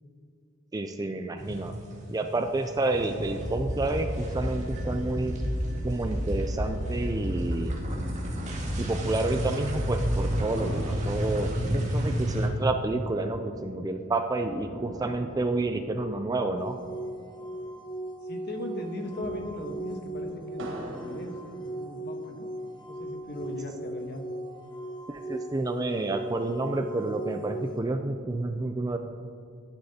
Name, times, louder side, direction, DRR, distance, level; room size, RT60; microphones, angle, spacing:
voice 1, 0.7-1.7 2.1-5.4 5.8-7.7 8.8-16.8 25.1-29.0, right 2 dB, 20° right, 6 dB, 0.4 m, -29 dB
sound 1, 1.4-2.1 2.4-12.5, equal, 35° right, 1.7 m, -30 dB
sound 2, 10.6-18.2 18.4-18.5 19.0-22.3 22.9-23.8, equal, 70° right, 1.4 m, -45 dB
sound 3, 16.6-27.8, right 1 dB, 25° left, 1.1 m, -38 dB
voice 2, 18.2-22.5 22.9-24.2, left 1 dB, 55° left, 3 dB, 1.2 m, -38 dB
11.5 x 10.0 x 2.8 m, 2.5 s
head